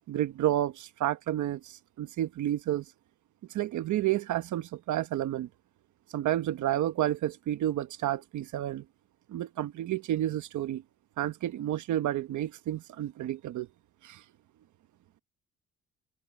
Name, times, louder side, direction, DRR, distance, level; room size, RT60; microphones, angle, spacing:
voice 1, 0.1-2.8 3.5-5.5 6.1-8.8 9.3-10.8 11.2-13.7 14.0-14.2, right 12 dB, 75° right, 1.1 m, -30 dB
cardioid pair, 90°, 30 cm